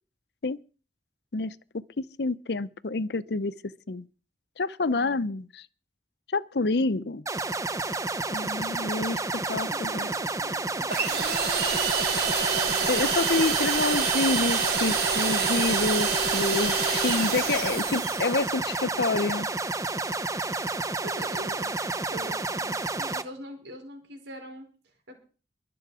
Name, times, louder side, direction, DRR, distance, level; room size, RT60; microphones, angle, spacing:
voice 1, 2.2-3.5 3.9-4.1 4.6-5.7 6.3-7.3 8.3-10.1 12.9-19.5, left 3 dB, 65° left, 0.7 m, -28 dB
sound 1, 7.3-23.2, right 3 dB, 20° right, 0.8 m, -30 dB
voice 2, 9.5-11.1 12.6-12.9 21.0-22.7 23.0-24.7 25.1-25.2, right 1 dB, 80° right, 4.9 m, -43 dB
sound 2, 10.9-18.5, right 5 dB, 60° right, 3.8 m, -27 dB
22.5 x 7.8 x 4.9 m
head